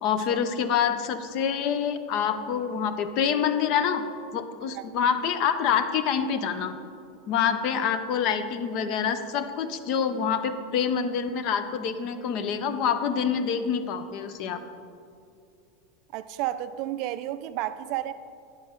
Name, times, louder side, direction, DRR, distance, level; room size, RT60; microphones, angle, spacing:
voice 1, 0.0-4.0 4.3-6.8 7.3-14.6, left 7 dB, 45° left, 0.5 m, -26 dB
voice 2, 16.1-18.1, right 13 dB, 50° right, 0.3 m, -31 dB
9.4 x 6.6 x 4.4 m
supercardioid pair, 150°, 0 cm